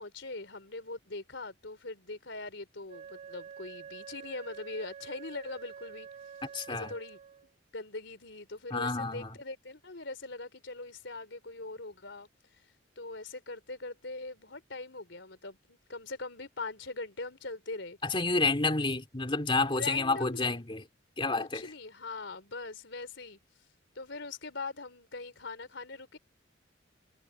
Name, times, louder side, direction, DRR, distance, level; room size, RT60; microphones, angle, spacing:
voice 1, 0.0-6.1 6.7-7.2 7.7-12.3 13.0-18.0 19.7-20.6 21.4-23.4 24.0-26.2, left 3 dB, 65° left, 3.9 m, -41 dB
Wind instrument woodwind instrument, 2.9-7.5, right 7 dB, 35° right, 2.3 m, -48 dB
voice 2, 6.5-6.9 8.7-9.3 18.0-20.8 21.2-21.7, left 3 dB, 25° left, 2.7 m, -29 dB
head